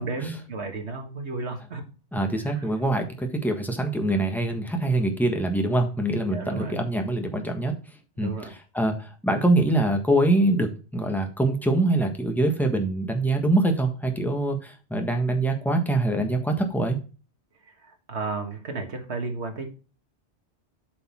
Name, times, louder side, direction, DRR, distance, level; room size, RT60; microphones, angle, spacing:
voice 1, 0.0-1.8 6.3-6.8 8.2-8.5 17.8-19.7, right 3 dB, 70° right, 4 dB, 1.8 m, -33 dB
voice 2, 2.1-7.7 8.2-17.0, right 2 dB, ahead, 3 dB, 1.3 m, -24 dB
8.4 x 5.3 x 4.3 m, 0.35 s
omnidirectional pair, 1.2 m